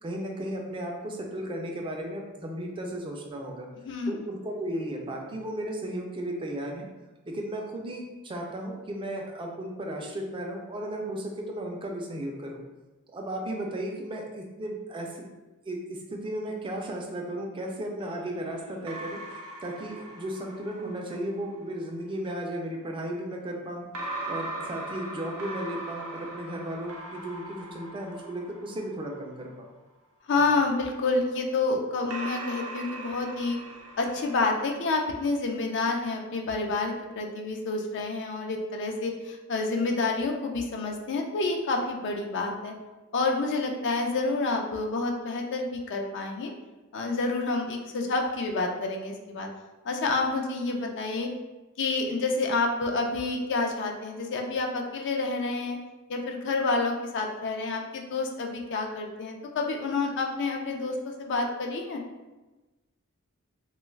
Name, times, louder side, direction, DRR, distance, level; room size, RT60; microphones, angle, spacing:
voice 1, 0.0-3.7 4.1-6.9 7.3-12.6 13.1-15.2 15.6-23.9 24.3-29.7, right 1 dB, 25° right, 0 dB, 0.3 m, -35 dB
voice 2, 3.8-4.3 30.3-33.6 34.0-42.7 43.1-46.5 46.9-49.5 49.8-51.3 51.8-55.8 56.1-62.0, left 3 dB, 55° left, 2 dB, 0.4 m, -28 dB
sound 1, 18.0-21.4 23.9-29.4 30.5-35.1, right 2 dB, 75° right, 0.5 m, -40 dB
2.9 x 2.3 x 3.2 m, 1.1 s
head